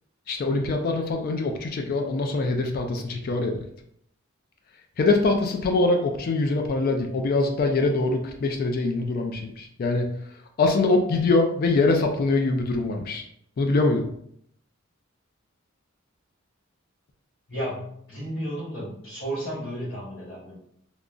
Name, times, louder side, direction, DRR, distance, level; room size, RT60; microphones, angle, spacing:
voice 1, 0.3-3.6 5.0-10.1 10.6-13.2 13.6-14.1, left 3 dB, 45° left, 3 dB, 0.3 m, -23 dB
voice 2, 17.5-20.6, equal, 75° left, -10 dB, 1.2 m, -33 dB
3.6 x 2.0 x 2.4 m, 0.69 s
head